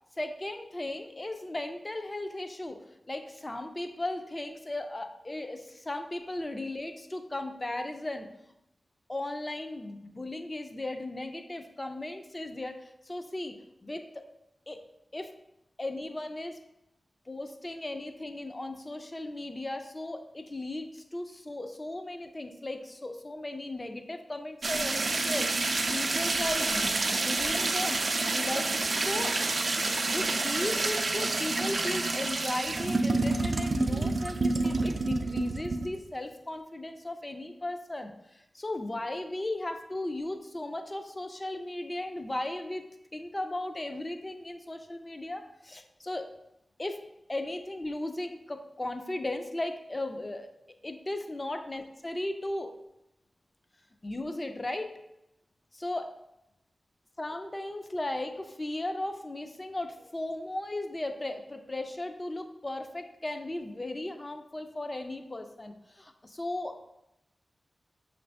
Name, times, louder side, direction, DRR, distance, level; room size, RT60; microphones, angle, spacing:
voice 1, 0.1-8.3 9.1-13.6 13.8-14.0 14.7-14.8 15.1-15.3 15.8-16.6 17.3-28.0 28.3-42.8 43.1-46.3 46.8-47.0 47.3-50.5 50.8-52.7 54.0-54.9 55.7-56.1 57.2-66.8, left 1 dB, 25° left, 6 dB, 0.4 m, -36 dB
sound 1, 24.6-36.0, right 3 dB, 55° right, 0.3 m, -28 dB
6.1 x 2.5 x 3.3 m, 0.85 s
wide cardioid pair, 100°, 0 cm